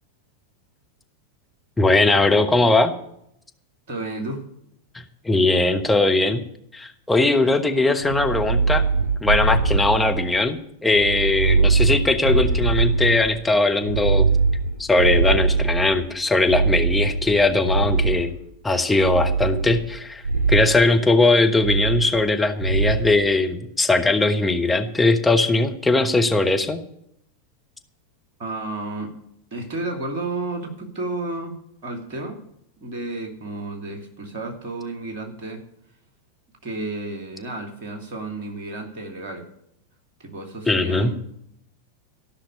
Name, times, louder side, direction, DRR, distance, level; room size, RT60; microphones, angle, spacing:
voice 1, 1.8-2.9 4.9-6.4 6.7-8.8 9.2-14.3 14.8-18.3 18.6-20.2 20.5-26.8 40.7-41.1, left 2 dB, 10° left, 3 dB, 1.2 m, -20 dB
voice 2, 3.9-4.5 28.4-29.1 29.5-32.4 32.8-35.6 36.6-39.5 40.2-41.2, right 2 dB, 50° right, 3 dB, 2.7 m, -32 dB
sound 1, 8.0-10.4 10.9-13.3 13.8-16.0 16.5-18.3 19.0-19.9 20.2-20.7 21.6-22.3 22.6-23.1, right 4 dB, 70° right, 6.1 m, -22 dB
14.0 x 6.0 x 9.8 m, 0.75 s
figure-of-eight pair, 90°, 0 cm